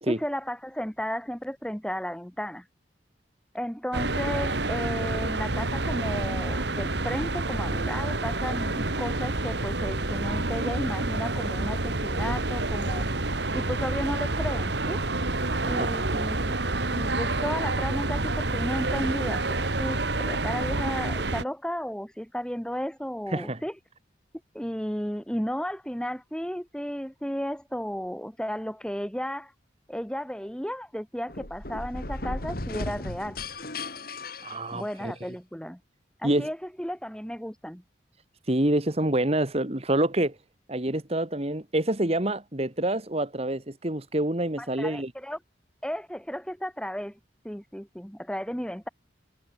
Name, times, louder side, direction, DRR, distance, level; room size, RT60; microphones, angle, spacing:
voice 1, 0.1-2.7 3.5-13.1 13.5-15.0 15.6-16.6 16.9-20.0 20.2-23.8 24.5-29.5 29.9-33.4 34.7-35.8 36.2-37.8 44.6-45.4 45.8-47.2 47.4-48.9, equal, 5° left, 4.7 m, -34 dB
sound 1, 3.9-21.4, right 2 dB, 70° right, 2.4 m, -28 dB
sound 2, 31.3-35.3, left 2 dB, 55° left, 3.2 m, -36 dB
voice 2, 34.4-35.1 36.2-36.5 38.5-40.4 40.7-45.1, right 1 dB, 35° right, 2.0 m, -27 dB
head